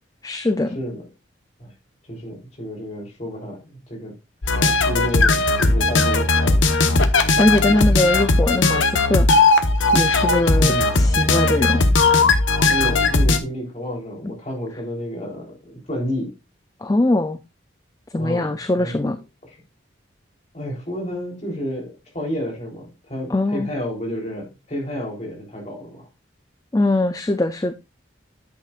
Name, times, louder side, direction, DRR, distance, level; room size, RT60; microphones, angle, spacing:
voice 1, 0.2-0.8 7.4-9.3 9.9-11.8 12.1-12.2 12.8-12.9 16.8-17.4 18.1-19.2 23.3-23.7 26.7-27.7, left 2 dB, 20° left, 0.4 m, -21 dB
voice 2, 2.1-4.1 4.9-6.7 10.6-10.9 12.7-16.3 18.1-19.1 19.5-19.6 20.5-26.1, equal, 35° left, 3.6 m, -30 dB
sound 1, 4.4-13.4, left 3 dB, 80° left, 1.1 m, -17 dB
10.0 x 8.5 x 2.4 m
head